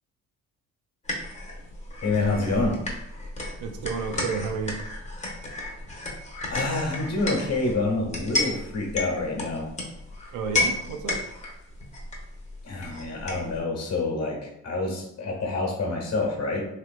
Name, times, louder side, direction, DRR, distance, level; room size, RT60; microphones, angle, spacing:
sound 1, 1.0-13.6, left 2 dB, 25° left, 0.9 m, -33 dB
voice 1, 2.0-2.8 6.5-9.7 12.6-16.7, left 3 dB, 55° left, -1 dB, 1.2 m, -27 dB
voice 2, 3.6-4.8 10.3-11.2, right 5 dB, 80° right, 4 dB, 0.6 m, -31 dB
3.2 x 2.9 x 2.4 m, 0.80 s
cardioid pair, 90°, 30 cm